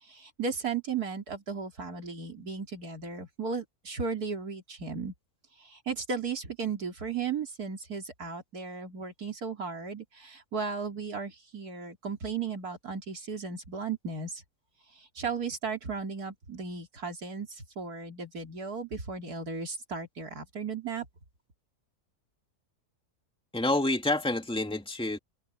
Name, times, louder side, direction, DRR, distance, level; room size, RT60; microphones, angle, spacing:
voice 1, 0.0-5.1 5.6-14.4 14.9-21.1, right 5 dB, 75° right, 3.7 m, -35 dB
voice 2, 23.5-25.2, left 2 dB, 5° left, 2.6 m, -28 dB
omnidirectional pair, 1.6 m